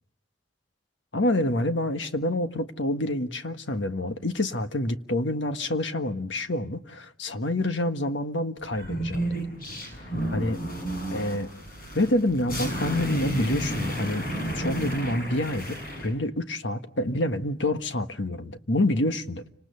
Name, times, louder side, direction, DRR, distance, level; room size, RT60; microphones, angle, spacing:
voice 1, 1.1-9.4 10.3-10.6 11.1-11.5 11.9-19.4, left 1 dB, 70° left, 1.5 m, -27 dB
sound 1, 8.7-16.1, right 1 dB, 50° left, 7.9 m, -32 dB
30.0 x 26.5 x 6.9 m
head